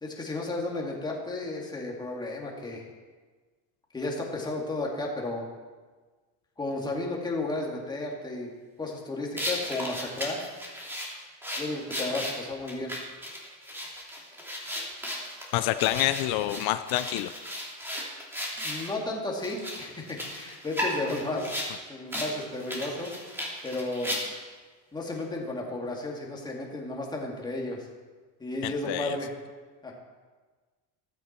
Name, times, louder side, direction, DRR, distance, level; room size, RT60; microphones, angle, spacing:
voice 1, 0.0-2.8 3.9-5.5 6.6-8.5 8.8-10.4 11.6-12.9 18.6-21.6 21.9-23.1 23.6-24.1 24.9-27.9 28.4-29.3 29.8-29.9, left 2 dB, 10° left, -2 dB, 2.2 m, -33 dB
sound 1, 9.4-18.9 19.4-21.7 22.1-22.3 22.6-24.5, equal, 5° right, 2.5 m, -35 dB
voice 2, 15.5-17.3 28.6-29.2, left 14 dB, 75° left, 11 dB, 0.6 m, -27 dB
15.0 x 13.5 x 4.4 m, 1.4 s
cardioid pair, 165°, 38 cm